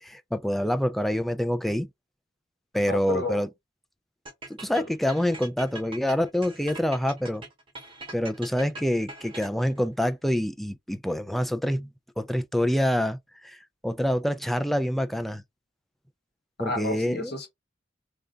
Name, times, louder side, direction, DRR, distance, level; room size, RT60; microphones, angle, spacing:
voice 1, 0.0-1.9 2.7-3.5 4.6-7.4 8.1-11.9 12.2-15.4 16.6-17.3, equal, ahead, 0.3 m, -26 dB
voice 2, 2.9-3.4 4.8-4.9 16.6-17.5, left 1 dB, 60° left, 1.0 m, -31 dB
sound 1, 4.3-9.8, right 2 dB, 30° right, 1.0 m, -42 dB
3.3 x 2.4 x 3.8 m
head